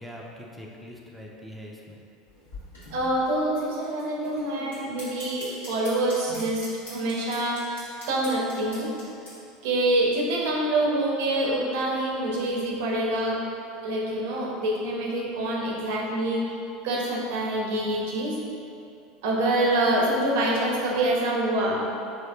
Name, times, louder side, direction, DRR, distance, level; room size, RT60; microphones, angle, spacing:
voice 1, 0.0-2.0, equal, ahead, -3 dB, 0.4 m, -42 dB
sound 1, 2.3-9.3, left 1 dB, 85° left, 1.1 m, -42 dB
voice 2, 2.9-7.6 8.1-8.9 9.6-13.4 13.8-16.4 16.8-18.4 19.2-21.8, right 1 dB, 65° right, -3 dB, 0.5 m, -26 dB
3.5 x 2.7 x 2.3 m, 2.7 s
hypercardioid pair, 75°, 0 cm